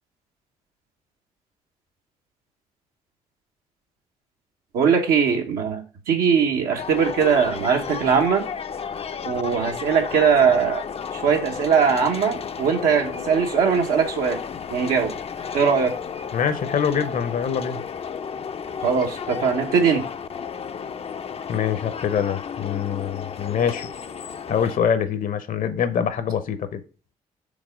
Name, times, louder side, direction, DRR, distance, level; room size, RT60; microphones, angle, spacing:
voice 1, 4.7-8.4 9.2-10.8 11.1-14.4 14.7-15.1 15.5-15.9 18.8-20.1, right 6 dB, 85° right, 1.1 m, -20 dB
sound 1, 6.8-24.8, left 6 dB, 40° left, 0.5 m, -33 dB
voice 2, 16.3-17.8 21.5-23.9 24.5-26.8, left 7 dB, 65° left, 0.8 m, -24 dB
5.2 x 3.5 x 5.1 m
supercardioid pair, 50°, 15 cm